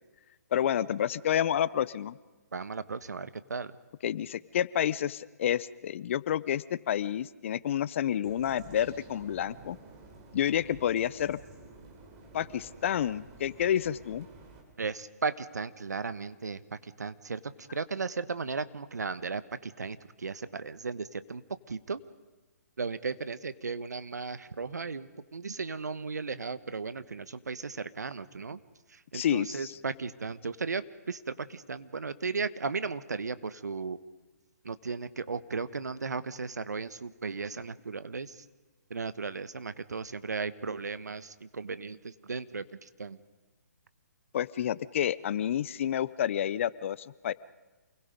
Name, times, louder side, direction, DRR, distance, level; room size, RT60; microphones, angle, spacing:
voice 1, 0.5-2.2 4.0-9.8 10.3-11.4 12.3-14.3 29.1-29.7 44.3-47.3, left 10 dB, 50° left, 19 dB, 0.7 m, -29 dB
voice 2, 2.5-3.8 14.8-21.4 21.7-22.0 22.8-28.6 28.9-34.0 34.6-38.4 38.9-43.2, right 4 dB, 85° right, 14 dB, 1.2 m, -36 dB
sound 1, 8.2-14.6, right 3 dB, 30° right, 4.2 m, -51 dB
28.5 x 22.0 x 5.2 m, 1.2 s
hypercardioid pair, 145°, 9 cm